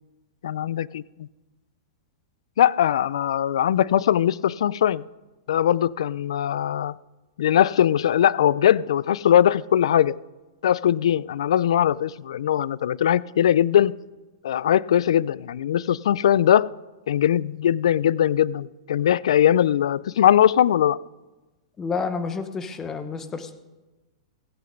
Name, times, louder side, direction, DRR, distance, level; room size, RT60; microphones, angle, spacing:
voice 1, 0.4-1.3 2.6-5.0 5.5-7.0 7.4-10.2 10.6-13.9 14.4-16.7 17.1-21.0, left 10 dB, 80° left, 0.3 m, -20 dB
voice 2, 21.8-23.5, left 5 dB, 15° left, 0.8 m, -29 dB
16.0 x 7.8 x 5.2 m
supercardioid pair, 160°, 3 cm